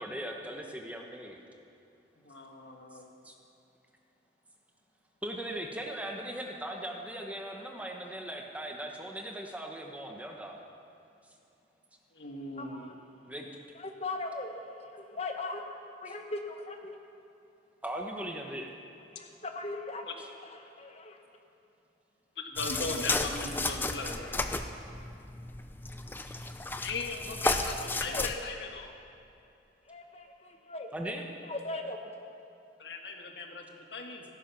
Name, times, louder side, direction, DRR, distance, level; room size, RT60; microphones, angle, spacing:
voice 1, 0.0-1.4 3.2-3.3 5.2-10.6 13.3-13.5 17.8-18.7 30.9-31.2, right 1 dB, 10° right, 1 dB, 1.1 m, -39 dB
voice 2, 2.2-3.1 12.1-12.9 22.4-24.3 26.8-28.9 32.8-34.2, left 3 dB, 70° left, 3 dB, 1.5 m, -38 dB
voice 3, 12.2-12.9 13.7-15.6 16.0-17.0 19.1-21.2 27.4-27.7 28.0-28.3 29.8-30.9 31.4-32.2, left 2 dB, 35° left, 4 dB, 1.3 m, -40 dB
sound 1, 22.6-28.3, left 2 dB, 10° left, 0.5 m, -33 dB
16.0 x 13.5 x 6.0 m, 2.6 s
head